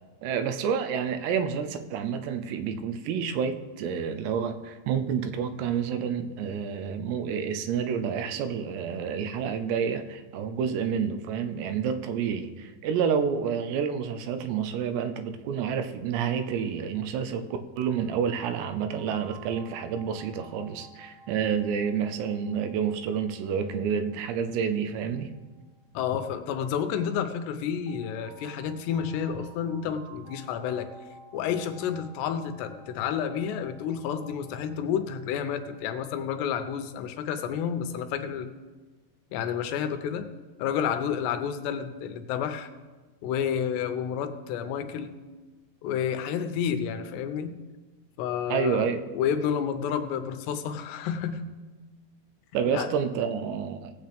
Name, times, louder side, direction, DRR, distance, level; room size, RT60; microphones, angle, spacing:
voice 1, 0.2-17.5 17.8-25.3 48.5-49.0 52.5-53.9, right 7 dB, 85° right, 8 dB, 2.9 m, -29 dB
sound 1, 17.8-26.6 27.9-37.0, right 3 dB, 60° right, 2.5 m, -53 dB
voice 2, 25.9-30.9 31.3-38.5 39.3-40.3 40.6-42.7 43.2-45.2 45.8-47.6 48.2-48.9 49.1-51.6 52.7-52.9, left 8 dB, 90° left, 8 dB, 2.9 m, -30 dB
18.0 x 8.1 x 3.5 m, 1.3 s
omnidirectional pair, 4.8 m